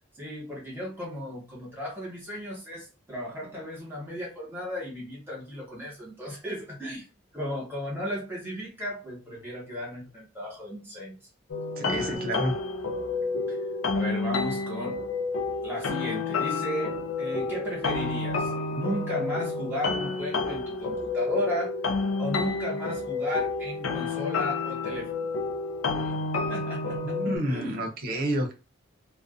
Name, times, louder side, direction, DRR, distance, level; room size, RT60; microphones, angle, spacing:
voice 1, 0.2-11.1 11.8-12.4 13.5-13.6 13.9-15.0 15.6-21.7 22.2-25.3 25.9-26.2 26.5-27.9, equal, 10° right, 1.0 m, -35 dB
sound 1, 11.5-27.4, left 3 dB, 85° left, 0.4 m, -30 dB
voice 2, 11.8-12.5 27.0-28.5, equal, 45° right, 0.6 m, -29 dB
2.5 x 2.1 x 2.4 m
head